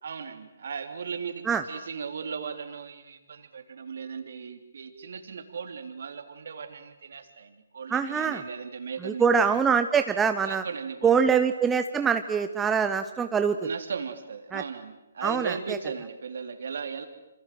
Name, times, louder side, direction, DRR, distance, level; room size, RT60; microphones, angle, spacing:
voice 1, 0.0-9.6 10.4-11.3 13.6-17.1, right 6 dB, 55° right, 8 dB, 3.5 m, -37 dB
voice 2, 7.9-8.4 9.0-10.6 11.0-13.6 14.5-14.6 15.2-15.5, right 6 dB, 10° right, 8 dB, 1.0 m, -24 dB
28.0 x 27.0 x 7.8 m, 0.96 s
figure-of-eight pair, 135°, 0 cm